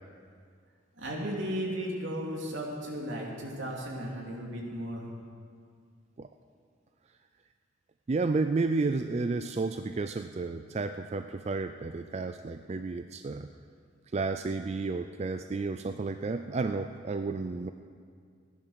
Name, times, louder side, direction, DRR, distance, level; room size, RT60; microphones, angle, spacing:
voice 1, 1.0-5.0, equal, 75° right, -2 dB, 2.8 m, -35 dB
voice 2, 8.1-13.5 14.1-17.7, right 3 dB, 35° right, 8 dB, 0.4 m, -31 dB
15.5 x 10.5 x 6.5 m, 2.1 s
head